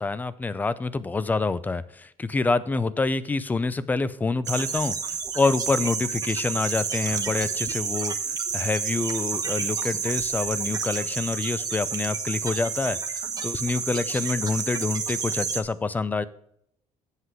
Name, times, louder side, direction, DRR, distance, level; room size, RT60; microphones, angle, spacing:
voice 1, 0.0-8.2 8.5-16.2, left 3 dB, 15° left, 17 dB, 0.4 m, -27 dB
sound 1, 4.4-15.6, right 5 dB, 30° right, 1.0 m, -30 dB
8.2 x 7.6 x 4.9 m, 0.71 s
cardioid pair, 155°, 13 cm